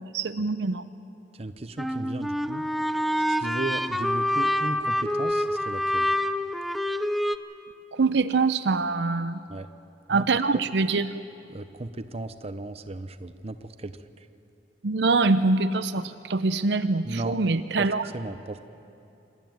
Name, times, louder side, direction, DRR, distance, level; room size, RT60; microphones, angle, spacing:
voice 1, 0.1-0.8 7.9-9.4 10.1-11.1 14.8-18.1, right 3 dB, 70° right, 11 dB, 0.6 m, -24 dB
voice 2, 1.4-2.6 3.3-6.1 9.5-9.7 10.1-10.3 10.5-10.6 11.5-14.0 17.0-17.4 17.8-17.9 18.1-18.6, right 2 dB, 35° right, 11 dB, 0.7 m, -35 dB
sound 1, 1.8-7.4, left 1 dB, ahead, 0.5 m, -26 dB
25.5 x 12.5 x 9.3 m, 2.8 s
head